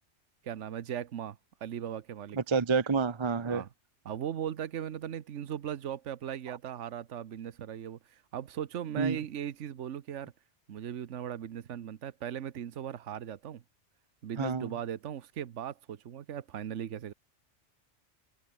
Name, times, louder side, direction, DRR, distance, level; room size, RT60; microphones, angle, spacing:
voice 1, 0.4-2.4 3.5-3.7 4.0-10.3 10.7-13.6 14.2-17.1, right 9 dB, 75° right, 1.2 m, -38 dB
voice 2, 2.4-3.6 9.0-9.2 14.4-14.7, right 5 dB, 30° right, 0.7 m, -28 dB
omnidirectional pair, 1.2 m